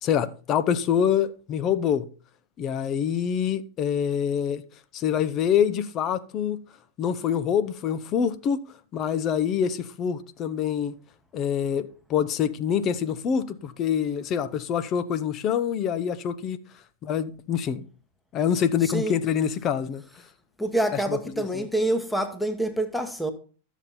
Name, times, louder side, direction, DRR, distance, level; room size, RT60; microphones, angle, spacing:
voice 1, 0.0-2.1 2.6-4.6 4.9-6.6 7.0-8.6 8.9-10.9 11.3-16.6 17.0-17.8 18.3-20.0 21.1-21.2, left 8 dB, 35° left, 0.8 m, -25 dB
voice 2, 18.8-19.2 20.6-23.3, right 1 dB, 5° left, 1.2 m, -26 dB
13.0 x 7.1 x 4.3 m
figure-of-eight pair, 90°, 0 cm